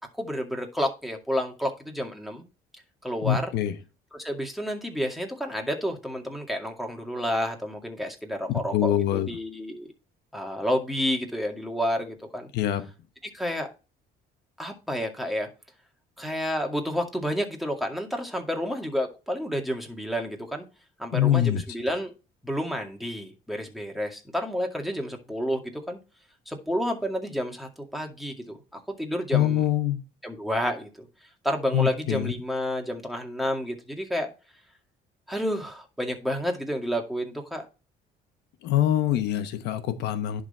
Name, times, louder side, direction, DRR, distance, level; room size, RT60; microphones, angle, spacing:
voice 1, 0.1-2.4 3.0-3.5 4.1-9.9 10.3-12.5 13.2-13.7 14.6-15.5 16.2-20.6 21.0-22.1 22.4-26.0 26.5-29.7 30.2-31.1 31.4-34.3 35.3-37.7, equal, ahead, 2 dB, 2.2 m, -30 dB
voice 2, 3.2-3.7 8.7-9.3 12.5-12.9 21.1-21.6 29.3-30.0 31.7-32.3 38.6-40.4, left 11 dB, 80° left, 10 dB, 1.0 m, -24 dB
10.5 x 4.0 x 4.3 m, 0.30 s
cardioid pair, 110°, 17 cm